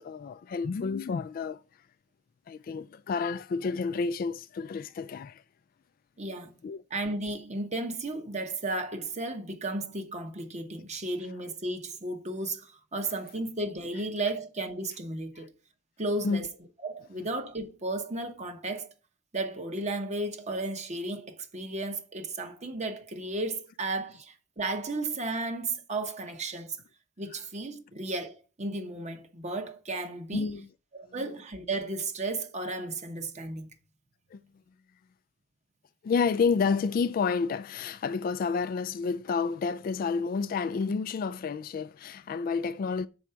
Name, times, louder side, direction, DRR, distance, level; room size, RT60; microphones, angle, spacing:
voice 1, 0.0-1.6 2.5-5.4 6.6-6.8 16.2-16.4 30.3-30.7 34.3-34.4 36.0-43.1, left 5 dB, 50° left, 0.3 m, -30 dB
voice 2, 6.2-6.6 6.9-15.5 16.0-16.5 16.8-18.9 19.3-26.8 27.2-30.5 30.9-33.7, right 2 dB, 35° right, 1.1 m, -34 dB
6.2 x 4.7 x 5.6 m
head